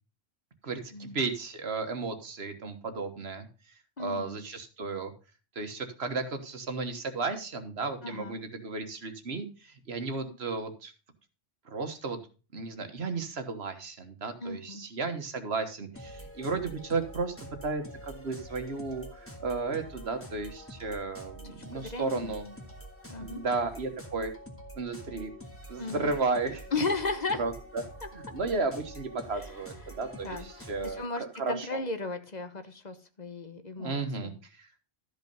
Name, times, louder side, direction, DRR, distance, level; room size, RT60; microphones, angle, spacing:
voice 1, 0.6-3.5 4.0-5.1 5.5-10.9 11.6-12.2 12.5-22.5 23.2-24.3 24.8-25.3 25.7-26.7 27.3-27.8 28.1-31.8 33.8-34.3 34.6-34.7, right 3 dB, 75° right, 8 dB, 1.6 m, -34 dB
voice 2, 4.0-4.4 8.0-8.4 10.2-10.4 14.4-14.9 21.4-22.5 23.1-23.4 25.8-26.1 26.7-27.4 30.2-34.4, left 3 dB, 45° left, 9 dB, 1.1 m, -35 dB
sound 1, 15.9-31.1, equal, 10° left, 1.7 m, -46 dB
13.0 x 5.4 x 5.3 m, 0.34 s
omnidirectional pair, 1.1 m